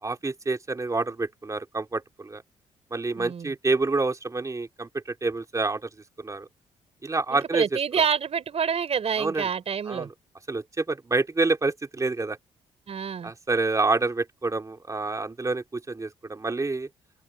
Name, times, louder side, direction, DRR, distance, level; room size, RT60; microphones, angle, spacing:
voice 1, 0.0-2.4 2.9-5.9 6.2-6.5 7.0-7.6 9.2-9.5 9.9-10.1 10.5-12.4 13.2-16.9, right 3 dB, 25° right, 3.1 m, -27 dB
voice 2, 3.1-3.5 7.3-10.1 12.9-13.3, right 7 dB, 50° right, 4.5 m, -27 dB
open air
supercardioid pair, 60°, 13 cm